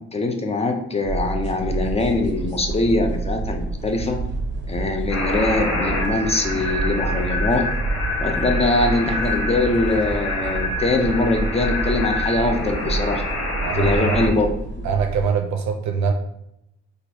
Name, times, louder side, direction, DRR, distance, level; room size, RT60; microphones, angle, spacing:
voice 1, 0.1-4.2 4.7-7.6 8.2-13.2 13.7-14.5, left 2 dB, 20° left, 4 dB, 0.5 m, -22 dB
sound 1, 1.0-15.3, right 3 dB, 35° right, 0.8 m, -28 dB
sound 2, 5.1-14.3, left 2 dB, 55° left, 1.2 m, -27 dB
voice 2, 13.6-14.2 14.8-16.1, right 6 dB, 65° right, 5 dB, 0.5 m, -23 dB
4.2 x 2.5 x 2.7 m, 0.79 s
cardioid pair, 90°, 30 cm